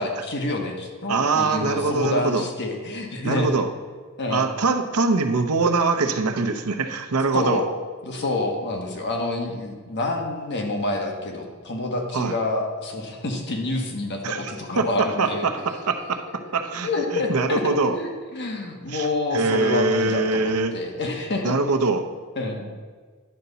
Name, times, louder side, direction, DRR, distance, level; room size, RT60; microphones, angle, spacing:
voice 1, 0.0-3.6 4.2-4.5 7.3-7.7 8.0-15.5 16.8-21.5 22.4-22.7, left 2 dB, 55° left, 2 dB, 1.3 m, -27 dB
voice 2, 1.1-2.4 3.2-3.7 4.3-7.7 12.1-12.3 14.2-18.0 18.9-19.1 19.3-20.7 21.4-22.1, right 3 dB, 80° right, 7 dB, 0.7 m, -23 dB
10.5 x 6.8 x 4.0 m, 1.5 s
head